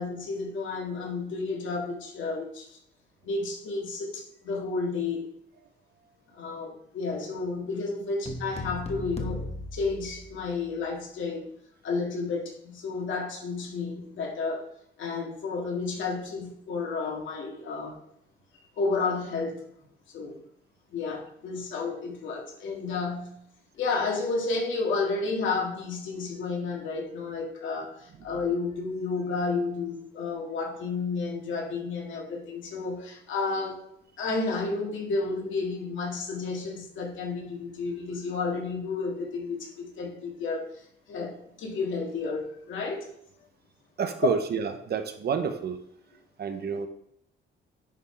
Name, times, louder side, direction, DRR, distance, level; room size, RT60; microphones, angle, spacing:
voice 1, 0.0-2.8 3.2-5.2 6.3-11.5 11.8-18.0 18.8-19.6 20.1-20.4 20.9-23.4 23.7-33.8 34.2-40.7 41.1-43.1, left 4 dB, 75° left, -1 dB, 2.2 m, -31 dB
sound 1, 8.2-10.8, left 1 dB, 30° left, 1.3 m, -37 dB
voice 2, 44.0-45.8 46.4-46.9, right 6 dB, 55° right, 8 dB, 1.0 m, -29 dB
10.5 x 3.6 x 4.4 m, 0.72 s
cardioid pair, 90°, 20 cm